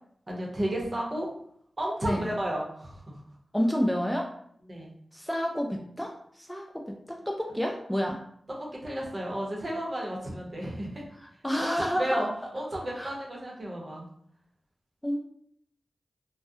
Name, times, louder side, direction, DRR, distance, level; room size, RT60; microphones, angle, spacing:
voice 1, 0.3-1.3 1.8-3.2 4.7-4.9 8.8-11.0 11.6-12.3 12.5-14.1, right 1 dB, 45° right, -2 dB, 0.8 m, -32 dB
voice 2, 3.5-4.3 5.1-6.8 7.1-8.2 11.4-12.2 13.0-13.1 15.0-15.2, equal, 5° left, 0 dB, 0.3 m, -29 dB
2.3 x 2.1 x 2.6 m, 0.66 s
cardioid pair, 50°, 0 cm